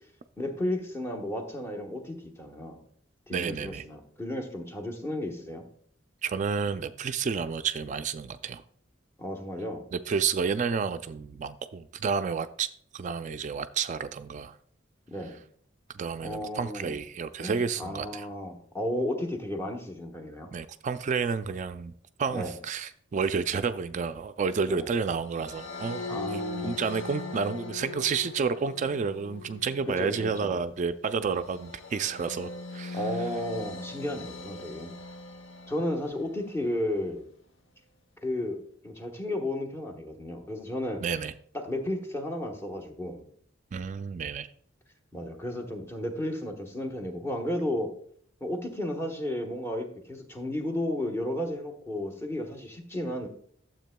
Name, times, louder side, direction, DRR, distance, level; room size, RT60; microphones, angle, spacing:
voice 1, 0.4-2.8 3.3-5.7 9.2-9.8 15.1-15.4 16.2-16.9 17.4-20.5 22.3-22.5 24.7-24.9 26.1-26.8 30.0-30.6 32.9-34.9 35.7-37.2 38.2-38.6 38.8-41.0 41.5-43.2 45.1-47.9 48.4-53.3, left 1 dB, 15° left, 1.1 m, -33 dB
voice 2, 3.3-3.8 6.2-8.6 9.9-14.6 15.9-18.3 20.5-21.9 22.2-33.0 41.0-41.3 43.7-44.5, right 5 dB, 40° right, 0.3 m, -30 dB
sound 1, 25.3-36.6, left 3 dB, 75° left, 0.9 m, -40 dB
12.0 x 7.5 x 2.2 m
head